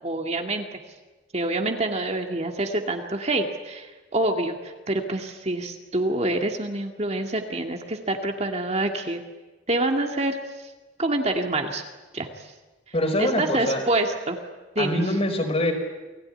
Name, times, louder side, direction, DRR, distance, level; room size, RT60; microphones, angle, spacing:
voice 1, 0.0-0.7 1.3-9.2 9.7-10.7 11.0-11.8 12.1-12.5 13.2-14.4 14.8-15.2, right 2 dB, 35° right, 3 dB, 2.2 m, -26 dB
voice 2, 12.9-13.8 14.8-15.7, left 1 dB, 30° left, 5 dB, 4.7 m, -24 dB
29.0 x 19.5 x 9.9 m, 1.2 s
head